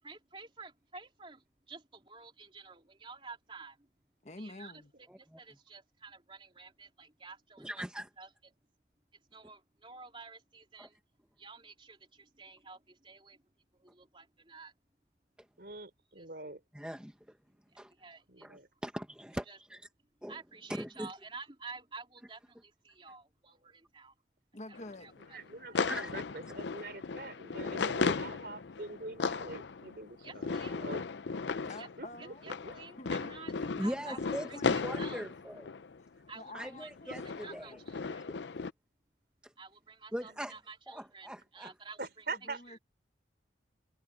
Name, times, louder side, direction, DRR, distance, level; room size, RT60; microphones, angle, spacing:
voice 1, 0.0-3.9 4.4-7.7 8.2-8.3 9.1-11.0 11.4-13.4 13.7-14.7 16.2-16.3 17.7-18.5 19.5-19.6 20.3-24.1 24.7-25.4 25.7-25.8 30.2-30.8 31.8-31.9 32.2-33.5 33.8-34.2 34.5-35.2 36.3-38.3 39.6-42.2 42.7-42.8, right 4 dB, 30° right, 3.6 m, -51 dB
voice 2, 4.2-4.9 24.5-25.1 31.6-32.4 33.0-33.1 33.6-33.7 34.0-35.1 36.0-36.1 36.3-37.4 42.5-42.8, left 2 dB, 40° left, 1.1 m, -48 dB
voice 3, 7.6-8.1 10.8-10.9 16.7-17.4 17.8-17.9 18.4-19.8 20.2-20.4 20.7-21.1 25.8-26.1 33.8-35.7 36.5-37.8 39.4-39.5 40.1-40.6 40.9-41.7, equal, 5° right, 1.2 m, -40 dB
voice 4, 15.6-16.6 18.3-18.7 25.1-31.0 31.6-31.7 32.0-32.7 40.2-40.4 42.0-42.6, right 3 dB, 60° right, 3.9 m, -44 dB
sound 1, 24.7-36.2 36.8-38.7, left 4 dB, 80° left, 0.6 m, -36 dB
head